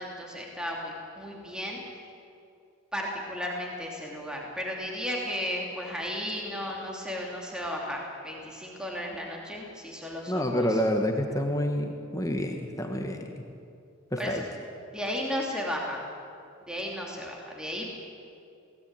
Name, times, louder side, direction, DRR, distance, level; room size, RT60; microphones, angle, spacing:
voice 1, 0.0-1.8 2.9-10.8 14.2-14.4 14.9-16.0 16.7-17.9, equal, 5° right, -1 dB, 2.9 m, -34 dB
voice 2, 10.3-13.4 14.1-14.4, equal, 15° left, 3 dB, 1.4 m, -28 dB
23.5 x 18.0 x 9.0 m, 2.5 s
head